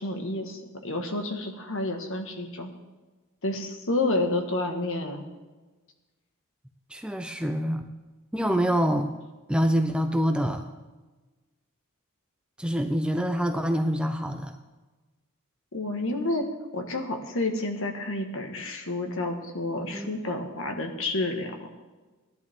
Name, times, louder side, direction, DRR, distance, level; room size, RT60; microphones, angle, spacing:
voice 1, 0.0-2.7 3.4-5.2 15.7-21.7, left 2 dB, 60° left, 4 dB, 1.6 m, -30 dB
voice 2, 6.9-7.8 8.3-9.1 9.5-10.7 12.6-14.5 19.9-20.1, equal, 5° right, 6 dB, 0.5 m, -26 dB
17.0 x 11.0 x 3.7 m, 1.2 s
head